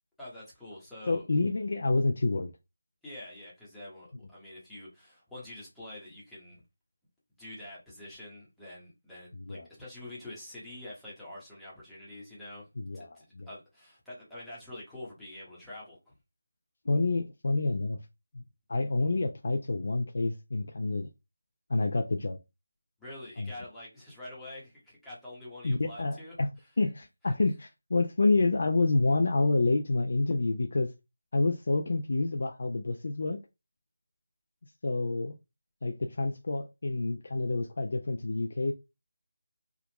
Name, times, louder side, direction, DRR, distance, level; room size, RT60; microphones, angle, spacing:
voice 1, 0.2-1.2 3.0-6.6 7.4-12.7 12.9-16.0 23.0-26.7, left 1 dB, ahead, 1.0 m, -46 dB
voice 2, 1.1-2.5 9.5-9.7 12.8-13.1 13.4-13.5 16.9-18.0 18.3-18.4 18.7-21.1 21.7-22.4 23.4-23.5 25.6-26.5 26.8-30.9 31.3-33.4 34.8-35.3 35.8-38.7, left 2 dB, 55° left, 0.4 m, -28 dB
3.5 x 2.3 x 2.9 m
figure-of-eight pair, 170°, 0 cm